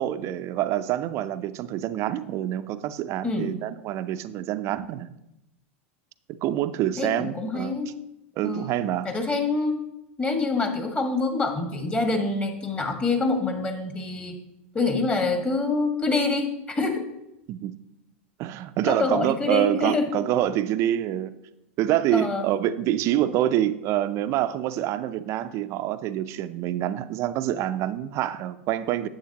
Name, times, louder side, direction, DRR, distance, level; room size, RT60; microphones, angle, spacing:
voice 1, 0.0-5.1 6.4-7.7 8.4-9.1 17.5-17.8 18.4-21.3 21.8-29.1, right 12 dB, 45° right, 12 dB, 0.5 m, -26 dB
voice 2, 7.0-8.0 8.4-8.7 9.0-9.8 10.2-14.4 14.7-17.1 18.8-20.1 22.1-22.4, left 3 dB, 20° left, 5 dB, 1.6 m, -26 dB
10.0 x 7.9 x 2.9 m, 0.88 s
hypercardioid pair, 100°, 7 cm